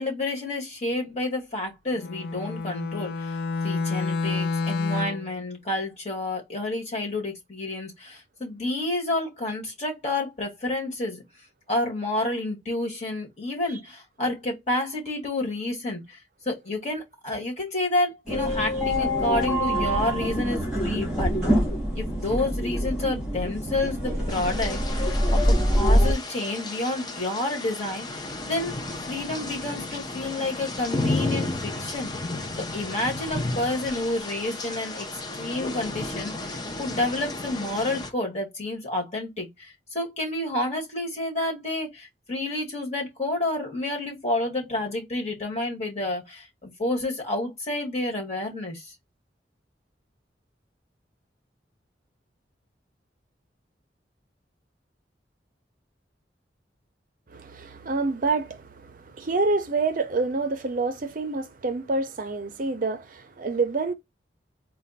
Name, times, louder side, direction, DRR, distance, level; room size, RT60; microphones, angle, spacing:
voice 1, 0.0-3.4 3.6-11.2 11.7-16.2 16.5-21.3 22.0-32.1 32.7-35.1 35.3-48.9, left 2 dB, 40° left, 1.8 m, -29 dB
Bowed string instrument, 1.9-5.3, left 4 dB, 60° left, 0.4 m, -29 dB
sound 1, 18.3-26.1, equal, 5° right, 2.0 m, -25 dB
voice 2, 18.5-18.9 57.3-63.9, right 3 dB, 50° right, 0.5 m, -28 dB
sound 2, 24.3-38.1, left 2 dB, 25° left, 0.6 m, -33 dB
4.2 x 2.2 x 4.0 m
head